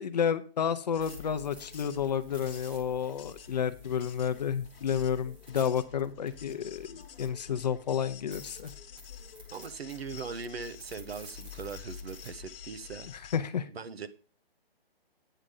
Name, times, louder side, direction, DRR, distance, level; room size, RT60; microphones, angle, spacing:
voice 1, 0.0-8.7 13.1-13.7, left 8 dB, 45° left, 0.6 m, -31 dB
sound 1, 0.7-7.5 7.9-8.0 8.3-12.3, right 1 dB, 10° right, 0.5 m, -54 dB
sound 2, 0.9-13.4, left 7 dB, 65° left, 1.2 m, -49 dB
voice 2, 9.5-13.1 13.7-14.1, right 5 dB, 75° right, 1.1 m, -40 dB
9.0 x 5.0 x 5.3 m
hypercardioid pair, 160°, 31 cm